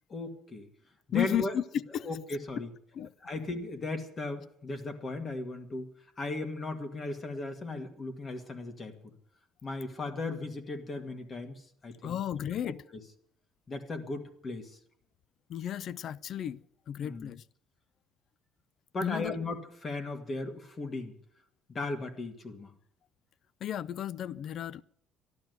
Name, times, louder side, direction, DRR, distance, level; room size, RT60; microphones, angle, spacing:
voice 1, 0.1-0.7 1.1-1.5 2.0-2.7 3.2-5.9 6.2-9.0 9.6-12.2 13.7-14.7 17.0-17.3 18.9-21.2 21.7-22.7, left 2 dB, 30° left, 2.1 m, -36 dB
voice 2, 1.1-2.1 2.9-3.1 12.0-12.8 15.5-16.6 16.9-17.4 19.0-19.4 23.6-24.8, left 10 dB, 55° left, 0.5 m, -33 dB
13.0 x 11.5 x 8.1 m
cardioid pair, 110°, 0 cm